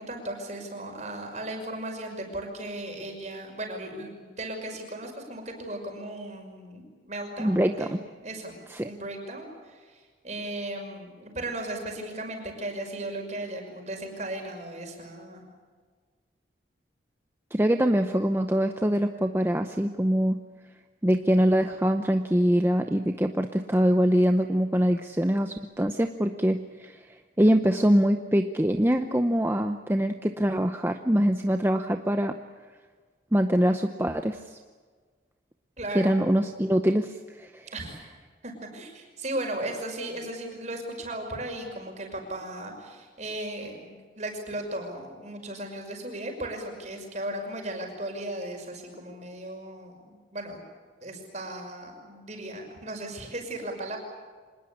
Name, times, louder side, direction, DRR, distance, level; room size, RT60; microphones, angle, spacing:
voice 1, 0.0-8.6 8.8-15.4 35.8-36.2 37.7-38.0 38.4-50.6 51.0-54.0, right 1 dB, 40° right, 3 dB, 5.7 m, -36 dB
voice 2, 7.4-8.0 8.7-8.9 17.5-20.4 21.0-27.1 27.4-32.4 33.3-34.6 35.9-37.7, equal, 10° right, 6 dB, 0.7 m, -24 dB
25.5 x 20.5 x 8.6 m, 1.5 s
head